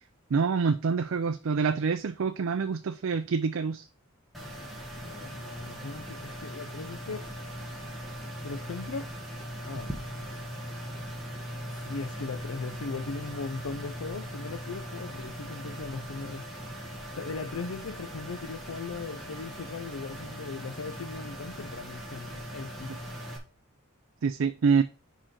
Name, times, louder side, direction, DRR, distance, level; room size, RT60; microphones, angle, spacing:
voice 1, 0.3-3.9 22.9-23.0 24.2-24.8, right 5 dB, 75° right, 0.4 m, -26 dB
sound 1, 4.3-23.4, equal, ahead, 1.5 m, -40 dB
voice 2, 5.0-7.2 8.4-9.1 9.6-9.9 10.2-10.4 11.8-16.5 17.1-23.0, left 4 dB, 85° left, 0.5 m, -38 dB
5.0 x 5.0 x 5.7 m
head